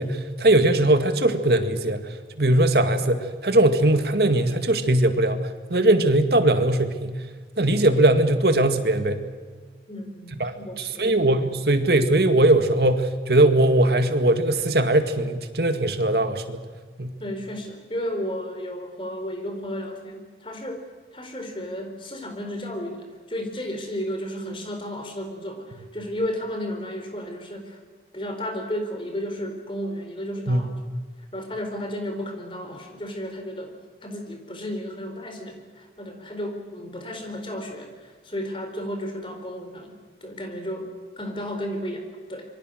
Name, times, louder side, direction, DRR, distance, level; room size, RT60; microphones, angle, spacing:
voice 1, 0.0-2.0 2.4-5.4 5.7-7.1 7.6-9.2 10.4-16.6 17.0-17.2 30.5-30.7, right 1 dB, 65° right, 8 dB, 2.1 m, -20 dB
voice 2, 9.9-11.1 17.2-20.8 21.1-27.8 28.1-30.7 31.3-33.7 34.0-40.9 41.2-42.5, equal, 30° left, 5 dB, 4.3 m, -33 dB
27.0 x 23.5 x 6.5 m, 1.5 s
head